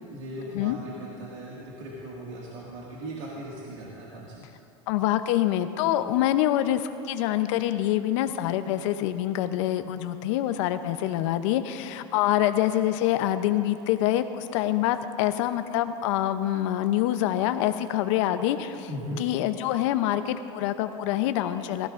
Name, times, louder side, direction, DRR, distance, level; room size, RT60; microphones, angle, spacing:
voice 1, 0.0-4.5 18.9-19.2, right 1 dB, 85° right, -5 dB, 1.9 m, -38 dB
voice 2, 4.9-18.9 19.2-21.9, left 13 dB, 75° left, 10 dB, 0.7 m, -26 dB
19.0 x 15.0 x 2.5 m, 2.6 s
supercardioid pair, 120°, 16 cm